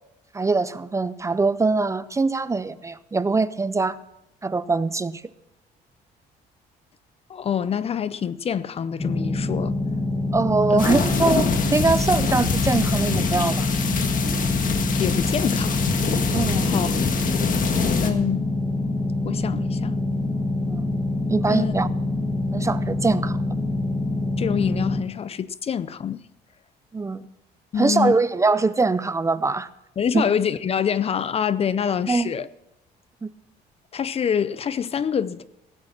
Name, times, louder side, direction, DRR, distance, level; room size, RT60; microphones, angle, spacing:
voice 1, 0.3-4.0 4.4-5.2 10.3-13.7 16.3-16.7 20.7-21.0 21.3-21.9 22.5-23.4 26.9-27.2 27.8-29.7 30.1-30.3 32.1-32.3 33.2-33.3, right 3 dB, 15° right, 0.5 m, -23 dB
voice 2, 7.3-9.8 10.7-10.8 15.0-15.8 16.6-17.0 18.0-18.4 19.2-20.0 21.5-21.7 24.4-26.2 27.7-28.2 30.0-32.5 33.9-35.4, left 8 dB, 35° left, 0.5 m, -26 dB
sound 1, 9.0-25.0, left 2 dB, 20° left, 1.8 m, -25 dB
sound 2, 10.8-18.1, left 5 dB, 50° left, 1.8 m, -25 dB
17.0 x 8.9 x 6.0 m
cardioid pair, 110°, 17 cm